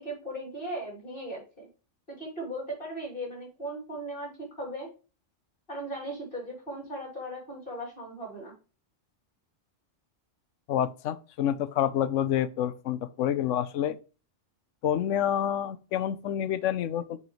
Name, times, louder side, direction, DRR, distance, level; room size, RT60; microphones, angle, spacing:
voice 1, 0.0-1.7 2.1-4.9 5.7-8.5, right 1 dB, 45° left, 3.4 m, -37 dB
voice 2, 10.7-14.0 14.8-17.2, left 10 dB, 90° left, 1.0 m, -28 dB
7.2 x 5.6 x 3.1 m
omnidirectional pair, 1.2 m